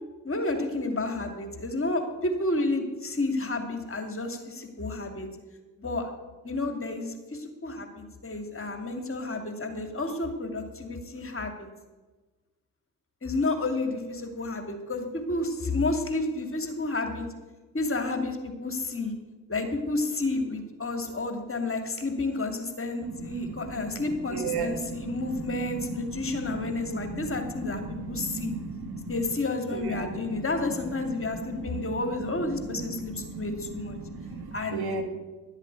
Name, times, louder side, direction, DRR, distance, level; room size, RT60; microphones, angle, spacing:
voice 1, 0.2-5.3 5.8-6.1 6.4-11.7 13.2-17.3 17.7-19.1 19.5-28.5 29.1-34.0 34.5-34.9, left 2 dB, 30° left, 5 dB, 2.6 m, -31 dB
voice 2, 23.0-29.3 29.7-30.4 30.8-32.1 32.4-35.0, right 3 dB, 65° right, 5 dB, 2.5 m, -36 dB
12.0 x 8.1 x 8.1 m, 1.2 s
hypercardioid pair, 50°, 41 cm